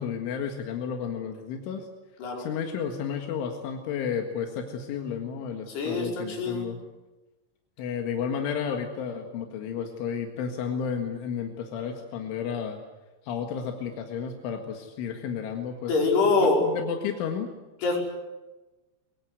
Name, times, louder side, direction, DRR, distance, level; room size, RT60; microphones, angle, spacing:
voice 1, 0.0-1.9 2.4-6.8 7.8-12.8 13.2-15.9 16.2-16.4 16.6-17.5, left 7 dB, 85° left, 4 dB, 4.2 m, -32 dB
voice 2, 5.7-6.7 15.9-16.6 17.8-18.0, left 3 dB, 60° left, 0 dB, 7.2 m, -24 dB
23.5 x 23.0 x 9.6 m, 1.1 s
omnidirectional pair, 5.4 m